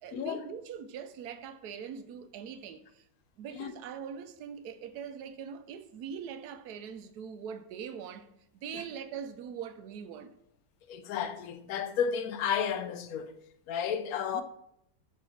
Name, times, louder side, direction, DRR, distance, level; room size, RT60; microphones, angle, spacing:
voice 1, 0.0-3.0 3.4-8.3 8.6-10.3 14.3-14.4, right 7 dB, 75° right, 1.2 m, -42 dB
voice 2, 10.9-13.3 13.7-14.4, left 8 dB, 70° left, 1.1 m, -32 dB
7.2 x 4.9 x 4.2 m
omnidirectional pair, 1.7 m